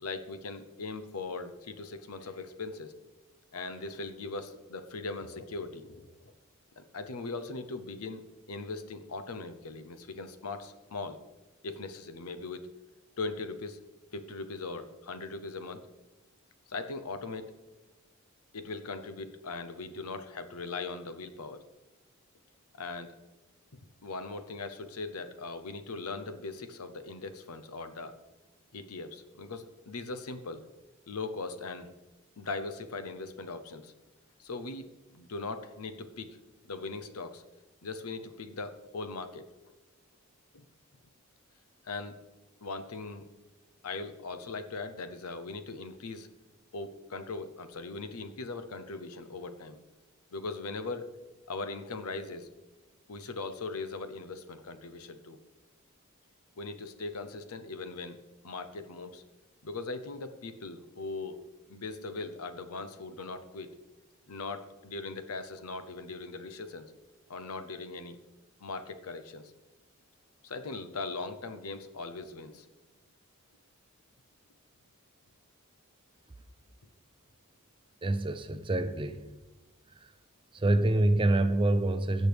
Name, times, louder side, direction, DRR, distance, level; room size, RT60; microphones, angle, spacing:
voice 1, 0.0-2.9 3.5-6.3 6.8-11.2 11.6-12.7 13.2-13.8 14.1-15.9 16.7-17.5 18.5-21.6 22.8-23.2 24.0-28.1 28.7-30.6 31.1-31.9 32.4-33.9 34.4-36.3 36.6-37.4 37.8-39.5 40.5-40.6 41.8-42.2 42.6-43.2 43.8-46.3 46.7-49.8 50.3-51.2 51.5-52.5 53.1-55.4 56.6-59.2 59.6-61.4 61.7-63.7 64.3-66.9 67.3-68.2 68.6-69.5 70.4-72.7, left 3 dB, 80° left, 10 dB, 0.8 m, -40 dB
voice 2, 78.0-79.3 80.5-82.3, right 1 dB, 25° right, 10 dB, 0.5 m, -26 dB
16.5 x 6.4 x 3.5 m, 1.1 s
head